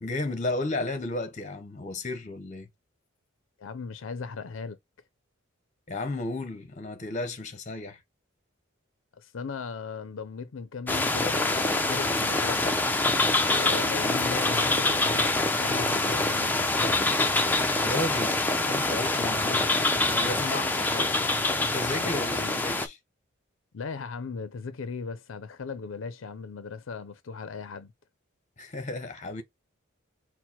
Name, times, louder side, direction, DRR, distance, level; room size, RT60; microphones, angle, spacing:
voice 1, 0.0-2.7 5.9-8.0 17.8-21.1 21.6-23.0 28.6-29.4, left 2 dB, 35° left, 0.7 m, -33 dB
voice 2, 3.6-4.8 9.2-12.8 13.5-17.1 21.9-22.1 22.4-22.5 23.7-27.9, left 5 dB, 70° left, 0.5 m, -37 dB
sound 1, 10.9-22.9, left 2 dB, 10° left, 0.4 m, -25 dB
4.4 x 2.1 x 4.2 m
head